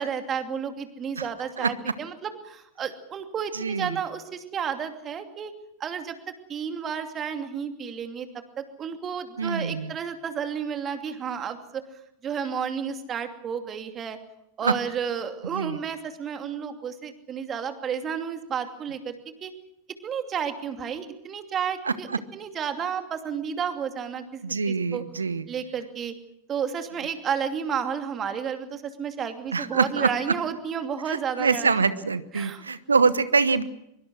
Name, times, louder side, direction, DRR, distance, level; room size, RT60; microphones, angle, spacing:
voice 1, 0.0-5.5 5.8-6.1 6.5-8.3 8.6-11.8 12.2-14.2 14.6-19.1 19.4-19.5 20.0-24.4 24.7-25.0 25.5-26.1 26.5-31.7 32.3-32.6, right 7 dB, 25° right, 7 dB, 2.7 m, -31 dB
voice 2, 3.5-4.0 9.4-9.9 14.6-14.7 15.5-15.8 21.8-22.2 24.4-25.4 29.5-30.1 31.1-33.6, right 4 dB, 75° right, 15 dB, 1.1 m, -24 dB
24.0 x 23.0 x 6.3 m, 0.80 s
figure-of-eight pair, 90°, 0 cm